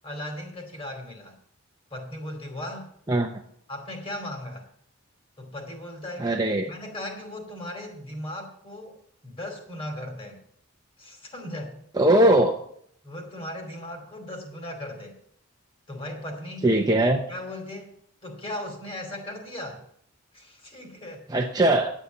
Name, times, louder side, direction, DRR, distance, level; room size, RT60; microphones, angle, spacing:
voice 1, 0.0-1.4 1.9-2.9 3.7-4.7 5.4-6.4 6.7-10.4 11.0-11.7 13.0-15.2 15.9-16.7 17.3-17.9 18.2-19.8 20.3-21.2, left 1 dB, 25° left, 3 dB, 2.6 m, -37 dB
voice 2, 6.2-6.7 11.9-12.5 16.6-17.2 21.3-21.9, right 1 dB, 15° right, 3 dB, 0.7 m, -20 dB
9.9 x 8.1 x 7.2 m, 0.66 s
head